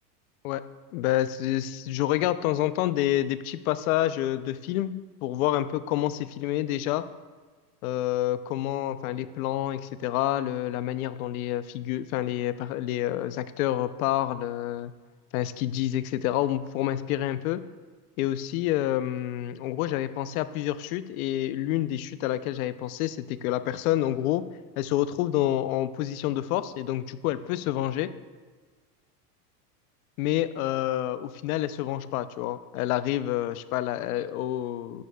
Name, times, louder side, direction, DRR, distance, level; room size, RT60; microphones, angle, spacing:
voice 1, 0.9-4.9 5.2-7.0 7.8-14.9 15.3-17.6 18.2-24.4 24.8-28.1 30.2-35.0, left 13 dB, 65° left, 13 dB, 0.6 m, -28 dB
13.0 x 10.5 x 2.3 m, 1.4 s
supercardioid pair, 175°, 47 cm